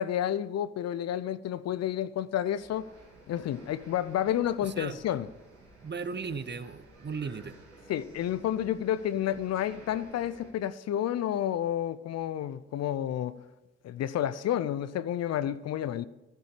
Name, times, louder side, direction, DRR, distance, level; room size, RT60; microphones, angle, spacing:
voice 1, 0.0-2.9 3.3-5.3 7.9-13.4 13.8-16.1, left 11 dB, 60° left, 0.6 m, -30 dB
sound 1, 2.5-10.5, right 2 dB, 80° right, 3.4 m, -53 dB
voice 2, 4.6-5.0 5.8-7.6, right 5 dB, 35° right, 0.9 m, -36 dB
11.5 x 10.5 x 5.0 m
hypercardioid pair, 45°, 30 cm